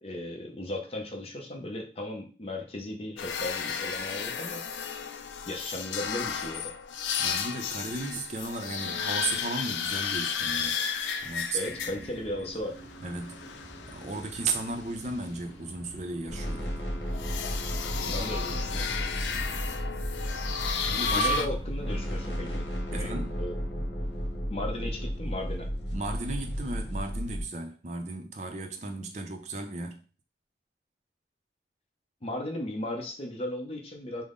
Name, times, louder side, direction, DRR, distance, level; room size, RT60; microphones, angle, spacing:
voice 1, 0.0-4.6 5.5-6.7 11.5-12.8 18.1-18.9 21.1-23.6 24.5-25.7 32.2-34.2, left 1 dB, 35° left, 0.5 m, -36 dB
sound 1, 3.2-12.3 12.8-14.9 17.1-21.5, left 6 dB, 90° left, 0.4 m, -33 dB
voice 2, 7.2-10.8 11.2-12.0 13.0-13.4 13.9-16.7 18.0-18.3 19.3-19.6 20.9-21.5 22.9-23.4 25.9-30.0, right 3 dB, 40° right, 0.5 m, -35 dB
sound 2, 11.7-22.4, right 1 dB, 15° left, 1.0 m, -48 dB
sound 3, 16.3-27.4, equal, 70° left, 1.0 m, -33 dB
3.6 x 2.0 x 3.7 m
head